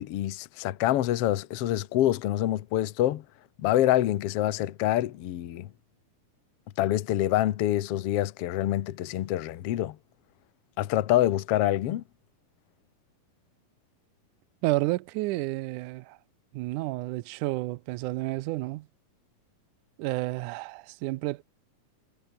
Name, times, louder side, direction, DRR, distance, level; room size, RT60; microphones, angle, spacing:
voice 1, 0.0-3.2 3.6-5.7 6.8-10.0 10.8-12.0, left 13 dB, 85° left, 1.3 m, -26 dB
voice 2, 14.6-16.2 16.5-18.9 20.0-21.4, right 19 dB, 80° right, 1.8 m, -30 dB
omnidirectional pair, 4.3 m